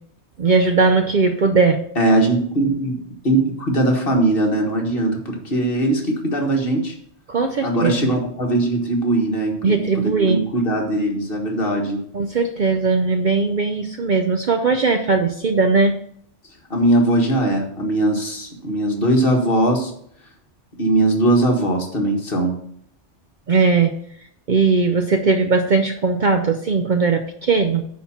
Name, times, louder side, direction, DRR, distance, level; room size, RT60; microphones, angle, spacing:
voice 1, 0.4-1.8 7.3-8.1 9.6-10.4 12.1-15.9 23.5-23.9 24.5-27.9, right 4 dB, 50° right, 6 dB, 0.6 m, -18 dB
voice 2, 2.0-3.0 3.2-7.0 7.6-12.0 16.7-19.9 20.8-22.5, right 1 dB, 50° left, 1 dB, 1.7 m, -20 dB
9.5 x 4.3 x 5.7 m, 0.67 s
omnidirectional pair, 1.2 m